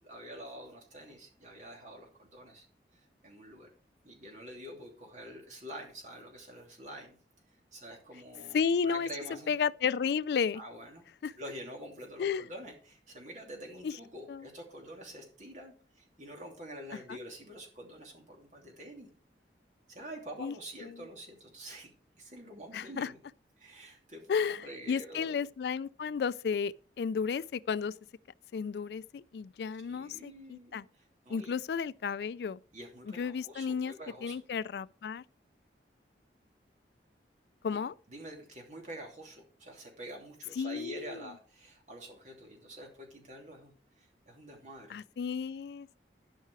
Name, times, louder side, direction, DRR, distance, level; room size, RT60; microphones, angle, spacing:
voice 1, 0.0-2.7 2.9-3.7 4.0-7.2 7.5-8.6 8.8-9.5 10.5-11.0 11.4-19.1 19.9-21.9 22.2-23.2 23.6-25.4 29.9-31.5 32.7-34.4 37.7-37.8 38.1-45.0, right 1 dB, 40° right, 3.0 m, -47 dB
voice 2, 8.5-9.1 9.5-10.6 11.2-11.3 12.2-12.4 13.8-13.9 14.3-14.5 20.4-20.5 22.7-23.1 24.3-27.9 28.5-30.8 31.3-32.6 33.2-33.9 34.2-35.2 37.6-37.9 40.6-41.2 44.9-45.9, left 6 dB, 65° left, 0.3 m, -32 dB
12.0 x 5.7 x 4.7 m
head